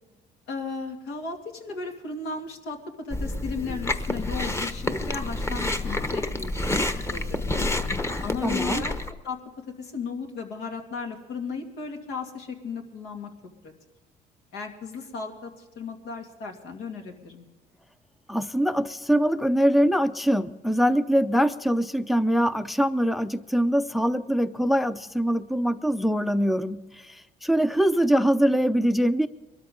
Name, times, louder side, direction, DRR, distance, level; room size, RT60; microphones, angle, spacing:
voice 1, 0.5-6.8 7.1-7.9 8.2-8.9 9.2-9.4 9.8-13.3 13.6-13.7 14.5-17.5, left 4 dB, 85° left, 2 dB, 2.5 m, -35 dB
Chewing mastication, 3.1-9.1, left 2 dB, 15° left, 1.0 m, -28 dB
voice 2, 8.4-8.8 18.3-29.3, equal, ahead, 14 dB, 0.5 m, -23 dB
22.5 x 13.0 x 3.8 m, 1.1 s
cardioid pair, 110°, 17 cm